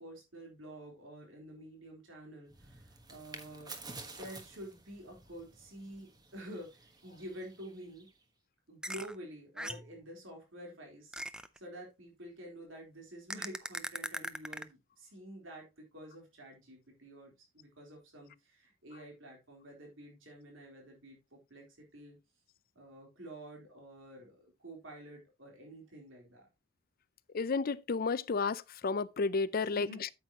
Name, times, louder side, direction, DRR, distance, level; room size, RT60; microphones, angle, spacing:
voice 1, 0.0-8.1 8.7-11.2 11.6-22.2 22.7-26.5 29.7-30.0, right 1 dB, 80° right, 3.7 m, -49 dB
sound 1, 2.5-8.2, right 3 dB, 20° right, 1.3 m, -51 dB
sound 2, 8.8-9.1 9.6-9.9 11.1-11.6 13.3-14.6, right 1 dB, 5° right, 0.5 m, -39 dB
voice 2, 27.3-30.1, left 4 dB, 50° left, 0.5 m, -32 dB
9.1 x 8.1 x 2.9 m
head